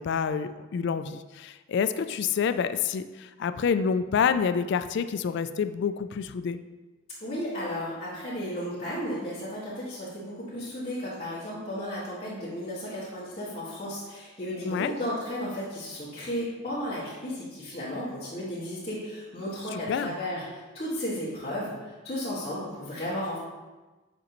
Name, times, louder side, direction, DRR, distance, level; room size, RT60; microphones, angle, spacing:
voice 1, 0.0-6.6 14.6-14.9 19.7-20.2, left 6 dB, 60° left, 11 dB, 0.3 m, -28 dB
voice 2, 7.2-23.4, equal, 30° left, -13 dB, 1.6 m, -34 dB
7.5 x 5.1 x 3.0 m, 1.2 s
head